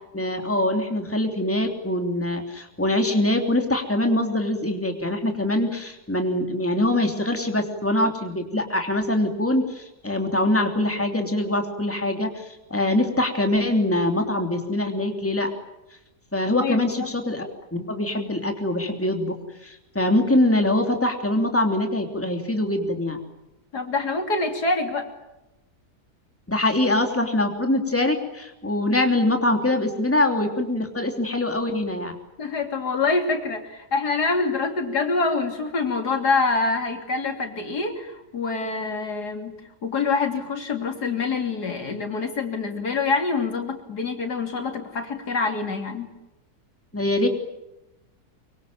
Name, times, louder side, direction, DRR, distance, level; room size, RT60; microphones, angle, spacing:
voice 1, 0.1-15.5 16.3-23.2 26.5-32.2 46.9-47.3, left 1 dB, 10° left, 4 dB, 3.0 m, -23 dB
voice 2, 16.6-17.1 23.7-25.1 32.4-39.6 39.8-46.1, left 4 dB, 80° left, 5 dB, 3.6 m, -26 dB
24.5 x 24.0 x 9.0 m, 0.95 s
omnidirectional pair, 1.7 m